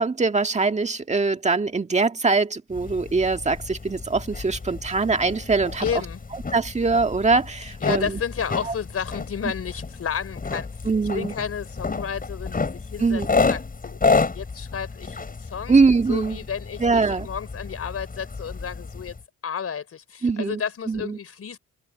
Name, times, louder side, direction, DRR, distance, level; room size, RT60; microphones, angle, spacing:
voice 1, 0.0-5.9 6.5-8.2 8.6-8.7 10.9-11.3 13.0-13.3 15.7-16.4 16.8-17.3 20.2-20.6 20.9-21.2, right 4 dB, 25° right, 1.8 m, -22 dB
sound 1, 2.7-19.2, left 4 dB, 30° left, 6.2 m, -30 dB
voice 2, 5.8-6.2 7.8-10.7 11.1-15.8 16.1-19.2 19.4-21.6, left 7 dB, 50° left, 5.0 m, -32 dB
cardioid pair, 90°, 30 cm